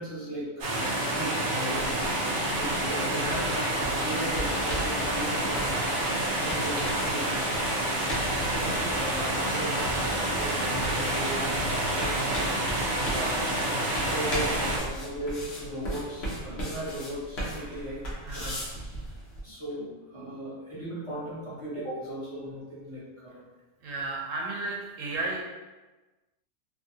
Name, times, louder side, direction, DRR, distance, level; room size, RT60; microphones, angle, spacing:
voice 1, 0.0-1.8 2.5-5.9 6.4-7.3 7.6-7.9 8.6-12.2 13.1-18.0 18.3-18.5 19.4-23.4, right 1 dB, 25° left, -11 dB, 1.0 m, -37 dB
sound 1, 0.6-14.8, right 1 dB, 55° right, 0.6 m, -28 dB
sound 2, 1.8-19.4, equal, 60° left, 0.9 m, -38 dB
voice 2, 3.2-3.5 18.2-18.6 23.8-25.4, right 2 dB, 85° right, -2 dB, 1.0 m, -34 dB
sound 3, 8.1-13.6, equal, 85° left, 1.1 m, -40 dB
2.8 x 2.4 x 2.6 m, 1.2 s
omnidirectional pair, 1.3 m